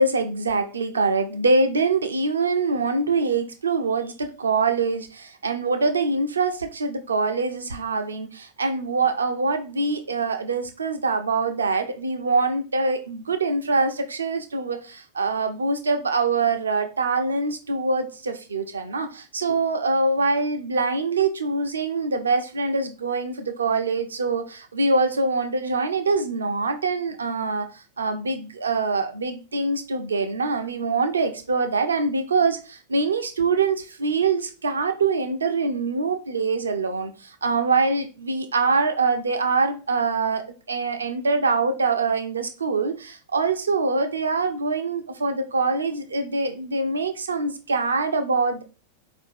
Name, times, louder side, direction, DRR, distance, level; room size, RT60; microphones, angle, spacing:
voice 1, 0.0-48.6, right 3 dB, 70° right, 7 dB, 0.6 m, -24 dB
4.5 x 2.6 x 4.3 m, 0.33 s
figure-of-eight pair, 90°, 0 cm